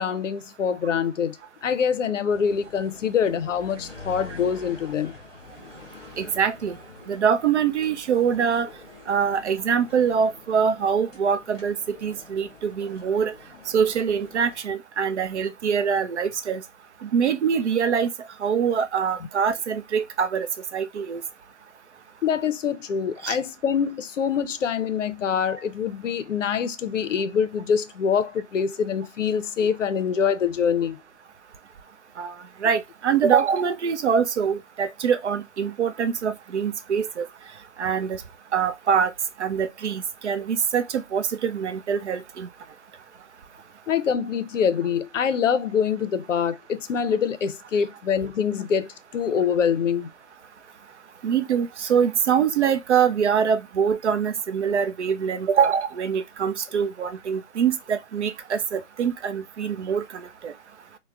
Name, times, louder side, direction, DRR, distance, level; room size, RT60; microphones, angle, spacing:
voice 1, 0.0-1.4 1.6-5.2 22.2-31.0 43.9-50.1, left 7 dB, 75° left, 0.5 m, -25 dB
sound 1, 2.3-14.6, left 3 dB, ahead, 0.7 m, -46 dB
voice 2, 6.2-6.8 7.1-8.7 9.1-13.3 13.7-16.6 17.0-18.1 18.4-20.5 20.7-21.2 23.2-23.4 32.2-32.3 32.6-37.3 37.8-38.2 38.5-39.1 39.4-42.5 51.2-60.5, right 7 dB, 65° right, 0.5 m, -24 dB
3.3 x 2.1 x 2.3 m
hypercardioid pair, 155°, 38 cm